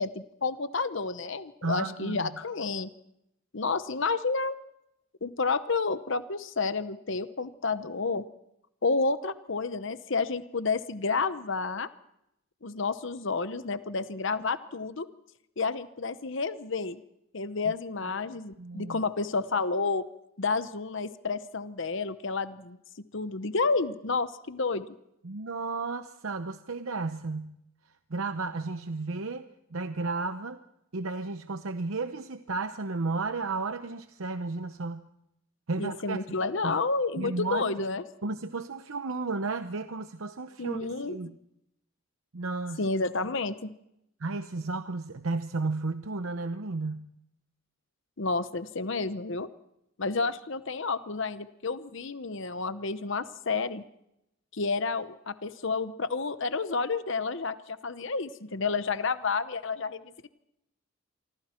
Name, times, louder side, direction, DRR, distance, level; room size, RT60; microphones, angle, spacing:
voice 1, 0.0-2.9 3.5-4.5 5.2-8.2 8.8-11.9 12.6-15.1 15.6-17.0 17.3-20.1 20.4-22.8 23.1-24.9 35.8-38.0 40.6-41.2 42.8-43.7 48.2-49.5 50.0-53.8 54.5-60.0, left 4 dB, 60° left, 12 dB, 0.9 m, -30 dB
voice 2, 1.6-2.3 18.6-19.0 25.2-27.6 28.1-29.5 29.7-30.6 30.9-35.0 35.7-36.2 36.6-36.7 37.2-37.8 38.2-41.3 42.3-42.9 44.2-47.1, right 3 dB, 75° right, 9 dB, 0.8 m, -33 dB
27.0 x 24.5 x 4.5 m, 0.82 s
head